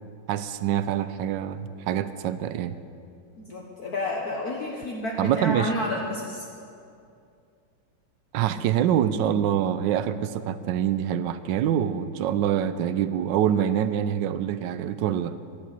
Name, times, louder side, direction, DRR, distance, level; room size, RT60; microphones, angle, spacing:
voice 1, 0.3-2.8 5.2-5.7 8.3-15.4, right 10 dB, 75° right, 13 dB, 1.2 m, -25 dB
voice 2, 3.4-6.5, left 1 dB, 55° left, -1 dB, 1.6 m, -30 dB
11.0 x 10.0 x 8.3 m, 2.4 s
omnidirectional pair, 2.1 m